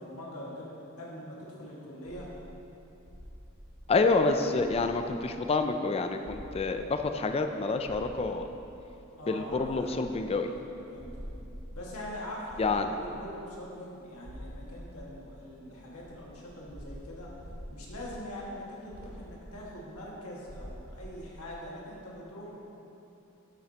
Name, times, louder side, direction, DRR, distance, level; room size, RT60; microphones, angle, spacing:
voice 1, 0.0-2.3 9.1-10.1 10.3-10.5 10.9-11.1 11.7-17.3 17.7-22.6, left 1 dB, 85° left, -4 dB, 1.8 m, -43 dB
sound 1, 2.0-21.7, equal, 35° right, 1.2 m, -48 dB
voice 2, 3.9-8.5 9.3-10.5 12.6-12.9, left 3 dB, 30° left, 7 dB, 0.4 m, -28 dB
11.5 x 7.4 x 2.9 m, 2.9 s
head